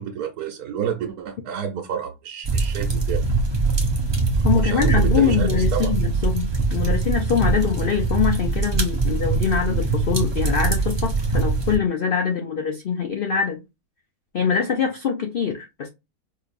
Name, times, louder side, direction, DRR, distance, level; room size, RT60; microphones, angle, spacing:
voice 1, 0.0-3.2 4.5-5.9, right 8 dB, 85° right, 1.3 m, -29 dB
sound 1, 2.4-11.8, right 3 dB, 30° right, 0.4 m, -22 dB
voice 2, 4.4-13.6 14.3-15.9, left 7 dB, 60° left, 0.5 m, -23 dB
4.8 x 2.6 x 2.5 m
omnidirectional pair, 1.6 m